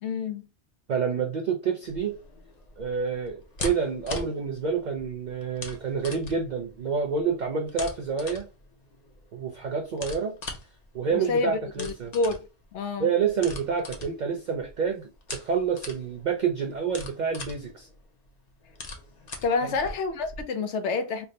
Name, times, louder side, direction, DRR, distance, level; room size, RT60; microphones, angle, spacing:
voice 1, 0.0-0.5 11.1-12.4 12.7-13.1 19.4-21.3, left 4 dB, 75° left, 0.9 m, -28 dB
voice 2, 0.9-2.2 2.8-8.5 9.3-10.4 10.9-12.1 13.0-17.9 19.6-19.7, right 6 dB, 55° right, 0.5 m, -28 dB
sound 1, 1.8-20.4, left 2 dB, 45° left, 0.7 m, -42 dB
3.4 x 2.1 x 3.8 m
omnidirectional pair, 1.2 m